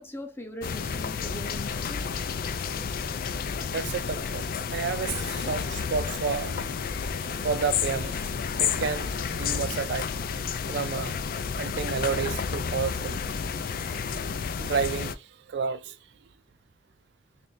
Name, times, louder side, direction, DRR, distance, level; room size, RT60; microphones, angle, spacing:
voice 1, 0.0-2.1, left 1 dB, 15° left, 0.8 m, -40 dB
sound 1, 0.6-15.2, left 6 dB, 50° left, 0.4 m, -31 dB
voice 2, 3.7-4.4 4.7-6.8 7.4-8.2 8.6-10.1 10.7-11.2 11.6-13.2 14.6-16.0, right 6 dB, 65° right, 0.4 m, -31 dB
3.2 x 2.6 x 3.9 m
head